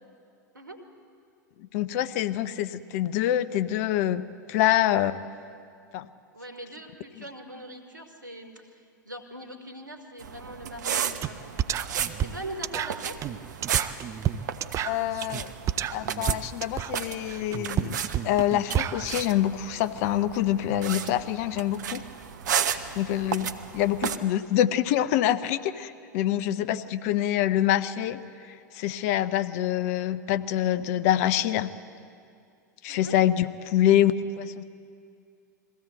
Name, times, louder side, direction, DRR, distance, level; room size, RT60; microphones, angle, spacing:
voice 1, 0.5-0.9 6.3-11.5 11.9-13.2 32.9-33.2, right 1 dB, 90° right, 5 dB, 2.1 m, -42 dB
voice 2, 1.7-5.2 5.9-6.1 14.8-15.5 15.9-22.0 23.0-23.5 23.7-28.2 28.7-31.7 32.8-34.6, left 12 dB, 50° left, 14 dB, 0.8 m, -25 dB
sound 1, 10.2-24.2, right 8 dB, 65° right, 1.0 m, -34 dB
sound 2, 11.2-11.3 11.6-19.2, right 10 dB, 30° right, 0.6 m, -30 dB
22.0 x 16.0 x 7.9 m, 2.4 s
figure-of-eight pair, 90°, 10 cm